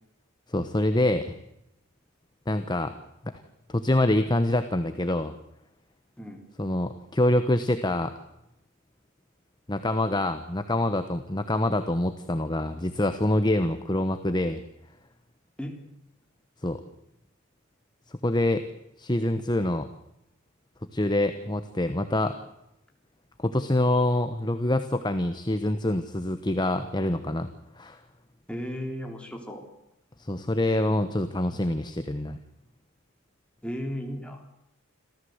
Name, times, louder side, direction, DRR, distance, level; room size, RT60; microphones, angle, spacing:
voice 1, 0.5-1.3 2.5-2.9 3.2-3.4 3.7-5.3 6.6-8.1 9.7-14.6 16.6-16.8 18.2-18.6 19.0-19.9 20.9-22.4 23.4-27.5 27.8-28.0 30.2-32.4, left 1 dB, 20° left, 9 dB, 1.1 m, -26 dB
voice 2, 28.5-29.6 33.6-34.5, equal, 5° left, 2 dB, 3.6 m, -35 dB
27.0 x 15.0 x 8.0 m, 0.85 s
head